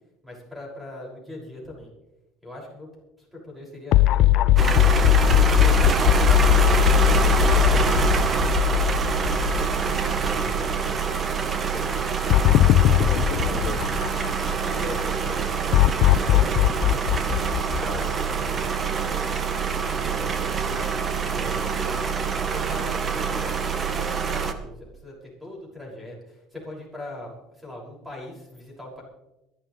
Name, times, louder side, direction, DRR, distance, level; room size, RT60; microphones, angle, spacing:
voice 1, 0.2-1.9 2.4-2.9 3.2-4.7 6.4-6.5 7.6-9.1 10.2-11.9 13.0-13.8 14.6-15.5 16.0-17.2 17.8-19.3 19.8-21.9 22.5-29.0, left 1 dB, 5° right, -3 dB, 6.2 m, -40 dB
sound 1, 3.9-10.2 10.6-10.7 12.3-14.8 15.7-18.5, left 16 dB, 60° left, 0.4 m, -20 dB
sound 2, 4.6-24.5, right 6 dB, 30° right, 1.1 m, -25 dB
voice 2, 5.6-6.3 12.7-14.6, left 5 dB, 40° left, -1 dB, 2.1 m, -38 dB
23.0 x 12.0 x 3.3 m, 0.95 s
cardioid pair, 135°, 0 cm